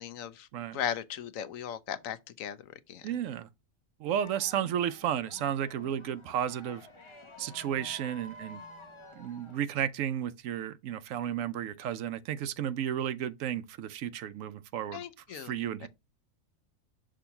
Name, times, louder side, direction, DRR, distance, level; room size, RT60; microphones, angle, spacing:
voice 1, 0.0-3.1 4.6-4.7 14.9-15.5 15.8-15.9, left 9 dB, 75° left, 1.1 m, -38 dB
voice 2, 3.0-3.5 4.0-6.9 7.4-8.6 9.1-15.0 15.3-15.9, right 10 dB, 75° right, 0.9 m, -33 dB
sound 1, 4.2-9.6, left 2 dB, 30° left, 0.7 m, -51 dB
6.1 x 2.9 x 5.7 m
omnidirectional pair, 1.4 m